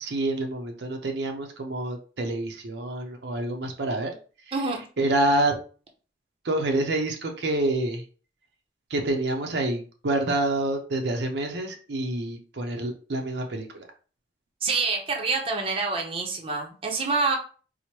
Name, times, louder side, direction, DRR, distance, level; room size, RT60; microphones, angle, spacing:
voice 1, 0.0-4.2 4.5-4.6 5.0-5.5 6.4-8.0 8.9-13.9, right 2 dB, 70° right, 3 dB, 0.6 m, -27 dB
voice 2, 14.6-17.4, right 4 dB, 30° right, 1 dB, 0.6 m, -26 dB
4.4 x 2.1 x 2.9 m, 0.38 s
head